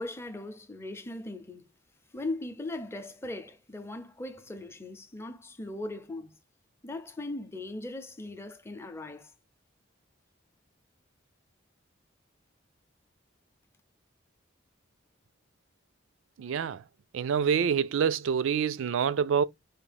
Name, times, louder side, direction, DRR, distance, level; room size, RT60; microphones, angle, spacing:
voice 1, 0.0-1.7 2.1-6.3 6.8-9.3, left 2 dB, 15° left, 0.5 m, -39 dB
voice 2, 16.4-16.8 17.1-19.4, right 7 dB, 75° right, 0.4 m, -26 dB
4.8 x 2.4 x 3.3 m
head